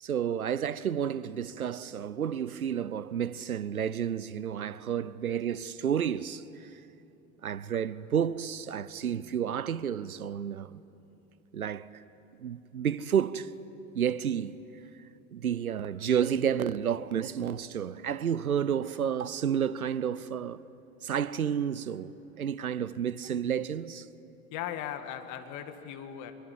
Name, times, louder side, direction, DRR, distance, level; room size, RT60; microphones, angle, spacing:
voice 1, 0.0-6.7 7.4-10.8 11.5-11.9 12.4-13.5 13.9-14.6 15.3-20.6 21.0-24.1, right 8 dB, 80° right, 0.8 m, -31 dB
voice 2, 24.5-26.3, left 10 dB, 45° left, 2.1 m, -38 dB
25.0 x 22.5 x 9.6 m
figure-of-eight pair, 80°, 42 cm